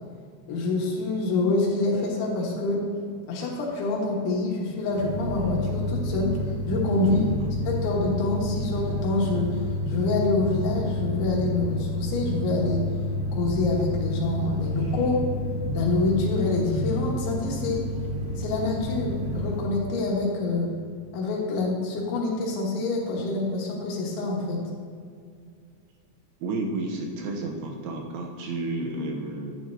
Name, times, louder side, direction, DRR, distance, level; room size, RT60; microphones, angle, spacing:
voice 1, 0.5-2.8 3.3-6.4 6.7-7.3 7.7-9.6 9.9-12.8 13.3-15.2 15.7-17.8 18.4-20.7 21.1-24.6, left 3 dB, 80° left, -2 dB, 3.8 m, -26 dB
sound 1, 4.9-19.6, left 1 dB, 40° right, 1.7 m, -30 dB
voice 2, 26.4-29.6, right 2 dB, 80° right, 1 dB, 2.5 m, -31 dB
10.5 x 10.5 x 2.7 m, 2.2 s
omnidirectional pair, 5.3 m